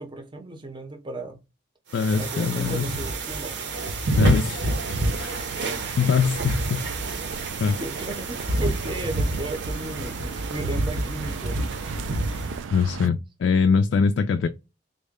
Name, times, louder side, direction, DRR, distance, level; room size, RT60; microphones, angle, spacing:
voice 1, 0.0-1.4 2.1-3.6 7.8-11.7, right 2 dB, 25° right, 0.6 m, -35 dB
voice 2, 1.9-2.9 4.1-5.4 6.0-6.8 7.6-7.8 12.7-14.5, left 5 dB, 65° left, 0.3 m, -23 dB
sound 1, 1.9-12.6, right 2 dB, 60° right, 0.7 m, -28 dB
sound 2, 4.7-13.1, right 5 dB, 80° right, 0.3 m, -38 dB
3.7 x 2.1 x 3.5 m
head